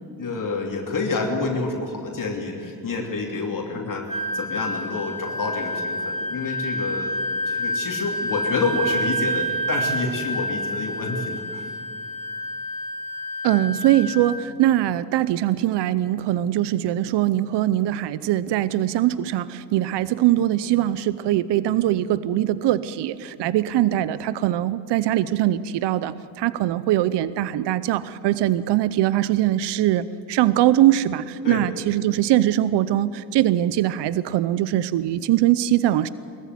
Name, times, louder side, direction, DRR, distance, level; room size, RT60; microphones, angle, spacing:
voice 1, 0.2-7.1 7.5-11.7 31.4-31.6, left 3 dB, 50° left, 1 dB, 3.0 m, -28 dB
Wind instrument woodwind instrument, 4.1-14.5, equal, 15° left, 3.3 m, -28 dB
voice 2, 13.4-36.1, right 13 dB, 75° right, 16 dB, 0.7 m, -22 dB
20.5 x 14.5 x 9.6 m, 2.4 s
supercardioid pair, 70°, 42 cm